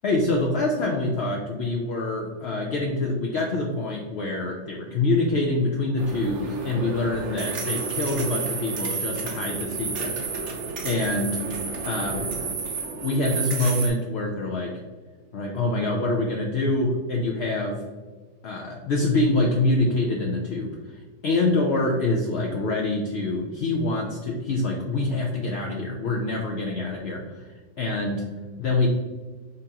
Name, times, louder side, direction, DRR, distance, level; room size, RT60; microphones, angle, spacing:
voice 1, 0.0-10.2 10.8-11.4 11.8-12.4 13.0-14.7 15.3-17.8 18.4-20.7 21.2-28.2 28.6-28.9, left 2 dB, 70° left, 0 dB, 0.6 m, -25 dB
sound 1, 6.0-13.9, right 4 dB, 60° right, 0.8 m, -31 dB
5.2 x 3.6 x 2.8 m, 1.4 s
omnidirectional pair, 1.8 m